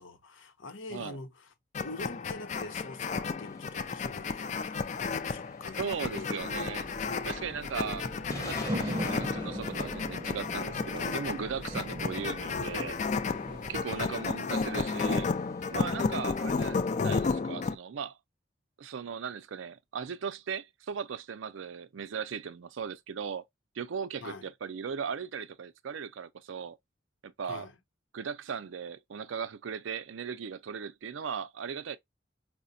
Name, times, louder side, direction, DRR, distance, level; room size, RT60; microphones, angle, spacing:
voice 1, 0.0-1.5 1.8-4.8 5.3-6.4 12.1-12.2 13.9-14.3 24.2-24.5 27.4-27.7, left 2 dB, 80° left, 0.8 m, -44 dB
sound 1, 1.7-17.8, left 4 dB, 35° left, 0.3 m, -33 dB
sound 2, 3.4-17.4, equal, 15° left, 0.8 m, -50 dB
voice 2, 5.8-6.9 7.2-8.1 8.4-13.0 13.7-15.3 15.7-18.1 18.8-23.4 23.8-26.8 27.2-27.7 28.1-32.0, right 6 dB, 85° right, 0.4 m, -38 dB
sound 3, 6.4-13.8, equal, 25° right, 0.6 m, -40 dB
4.8 x 2.1 x 2.6 m
head